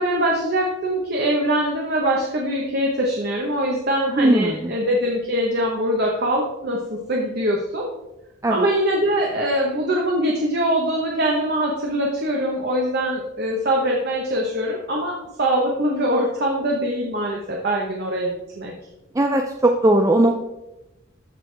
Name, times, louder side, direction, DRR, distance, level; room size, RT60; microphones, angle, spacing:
voice 1, 0.0-7.9 8.5-18.7, right 1 dB, 50° right, -1 dB, 1.2 m, -23 dB
voice 2, 4.2-4.6 8.4-8.6 19.2-20.4, right 1 dB, 15° right, 4 dB, 0.4 m, -18 dB
14.0 x 4.9 x 3.4 m, 0.93 s
head